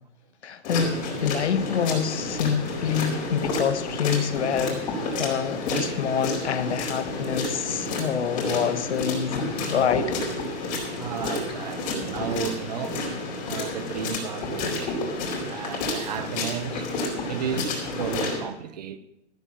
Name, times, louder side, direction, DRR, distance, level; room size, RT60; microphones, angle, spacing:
voice 1, 0.4-1.0 1.2-4.8 5.2-10.2, left 8 dB, 65° left, 1.3 m, -26 dB
sound 1, 0.6-18.4, left 2 dB, 35° left, 4.4 m, -30 dB
voice 2, 10.9-13.0 13.4-15.1 15.4-16.9 17.3-19.0, right 8 dB, 35° right, 0.8 m, -33 dB
14.5 x 7.7 x 7.3 m
hypercardioid pair, 160°, 36 cm